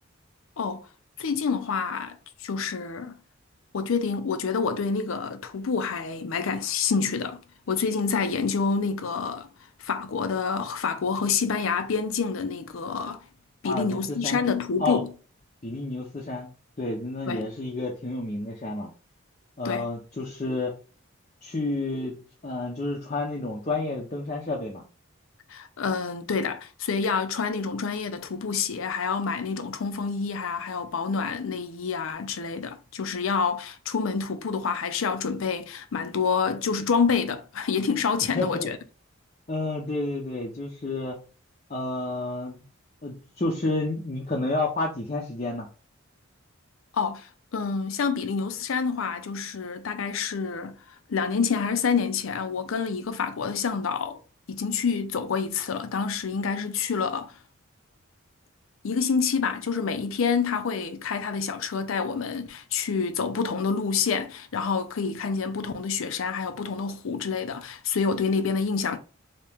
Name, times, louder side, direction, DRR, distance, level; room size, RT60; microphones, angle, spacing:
voice 1, 1.2-3.2 3.7-7.4 7.7-9.5 9.8-13.2 13.6-15.1 17.3-17.4 19.6-19.9 25.5-38.8 46.9-50.8 51.1-54.2 54.5-57.3 58.8-69.0, left 5 dB, 75° left, 0.5 m, -27 dB
voice 2, 13.6-14.4 14.8-15.0 15.6-16.5 16.8-18.9 19.6-20.7 21.4-22.2 22.4-24.8 38.3-38.7 39.5-41.2 41.7-42.6 43.0-45.7, left 2 dB, 30° left, 0.6 m, -30 dB
2.9 x 2.8 x 3.4 m
head